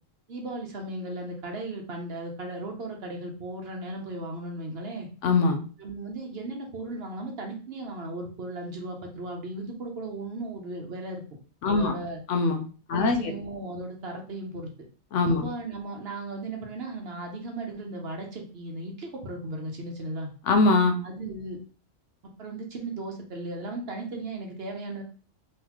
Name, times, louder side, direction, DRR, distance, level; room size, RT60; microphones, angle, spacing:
voice 1, 0.3-5.1 5.8-11.2 11.6-12.2 12.9-14.7 15.4-20.3 21.0-21.6 22.4-25.0, right 2 dB, 55° right, 2 dB, 0.9 m, -36 dB
voice 2, 5.2-5.6 11.6-11.9 12.3-12.6 12.9-13.3 15.1-15.4 20.5-21.0, left 3 dB, 70° left, 5 dB, 0.9 m, -22 dB
3.9 x 3.1 x 2.9 m, 0.39 s
omnidirectional pair, 1.3 m